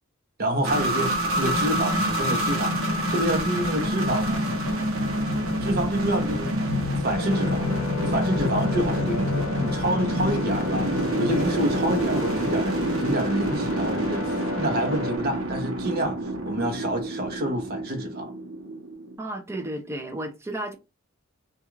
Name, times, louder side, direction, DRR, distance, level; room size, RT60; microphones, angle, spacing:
voice 1, 0.4-2.8 3.1-4.4 5.6-6.7 7.0-7.7 8.0-18.3, right 1 dB, 45° right, 0.7 m, -28 dB
sound 1, 0.6-19.1, equal, 75° right, 0.8 m, -27 dB
sound 2, 7.1-15.2, left 2 dB, 65° left, 0.6 m, -34 dB
voice 2, 19.2-20.7, right 1 dB, 15° right, 0.5 m, -33 dB
2.4 x 2.3 x 3.0 m
head